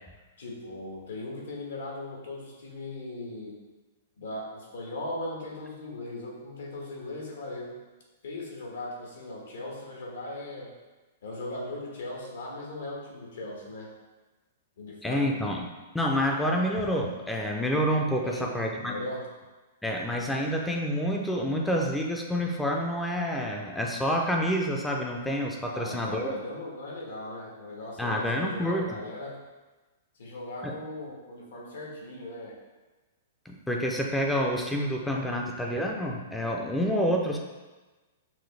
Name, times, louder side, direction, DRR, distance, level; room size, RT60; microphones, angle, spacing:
voice 1, 0.4-3.6 4.2-7.8 8.2-10.7 11.2-14.0 14.8-15.3 18.2-19.3 25.7-29.4 30.1-32.6, left 2 dB, 80° left, -2 dB, 1.2 m, -38 dB
voice 2, 15.0-15.7 15.9-19.0 19.8-26.3 28.0-28.9 30.6-30.7 33.5-37.4, equal, 5° left, 0 dB, 0.4 m, -28 dB
6.0 x 2.2 x 3.2 m, 1.2 s
hypercardioid pair, 135°, 0 cm